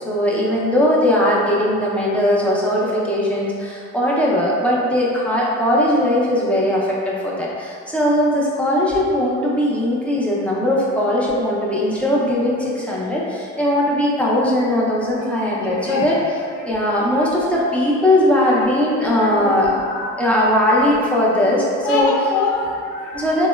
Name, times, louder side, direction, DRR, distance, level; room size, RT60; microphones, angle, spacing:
voice 1, 0.0-16.2 16.6-19.8 20.2-22.1 23.1-23.5, left 1 dB, 5° left, -6 dB, 0.4 m, -19 dB
voice 2, 15.4-16.1 16.6-16.7 17.1-17.5 19.2-20.3 21.8-23.5, left 3 dB, 80° left, -2 dB, 0.5 m, -26 dB
2.8 x 2.1 x 2.2 m, 2.2 s
cardioid pair, 90°, 30 cm